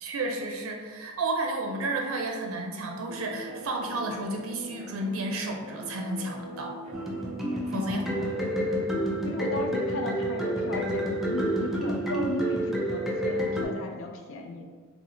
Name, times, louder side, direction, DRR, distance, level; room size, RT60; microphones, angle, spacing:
voice 1, 0.0-6.8 7.7-8.1, right 2 dB, 80° right, 1 dB, 0.4 m, -32 dB
sound 1, 3.1-8.5, right 1 dB, 35° right, 0.7 m, -43 dB
sound 2, 6.9-13.7, right 1 dB, ahead, 0.3 m, -29 dB
voice 2, 7.7-8.1 9.2-14.6, left 2 dB, 70° left, 2 dB, 0.4 m, -35 dB
3.1 x 2.0 x 3.7 m, 1.5 s
head